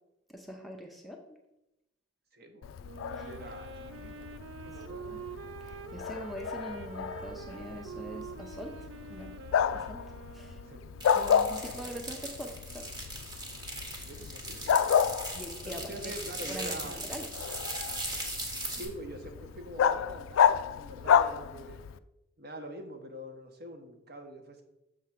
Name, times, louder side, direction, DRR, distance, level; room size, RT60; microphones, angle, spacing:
voice 1, 0.3-1.2 3.2-3.3 5.1-5.2 5.9-8.7 9.1-9.3 9.9-10.0 10.3-10.5 11.1-12.9 15.3-16.1 16.4-17.3, equal, ahead, 1 dB, 0.5 m, -42 dB
voice 2, 2.3-2.7 3.1-4.3 4.6-5.2 10.7-10.9 11.6-11.7 14.0-14.8 15.6-17.0 18.7-21.8 22.4-24.6, right 1 dB, 50° right, 4 dB, 0.9 m, -44 dB
Bark, 2.6-22.0, left 8 dB, 85° left, 0.3 m, -31 dB
Wind instrument woodwind instrument, 2.8-11.2, right 6 dB, 65° right, 0.4 m, -46 dB
sound 1, 11.0-18.9, right 1 dB, 20° right, 1.0 m, -39 dB
6.5 x 3.6 x 5.8 m, 0.89 s
head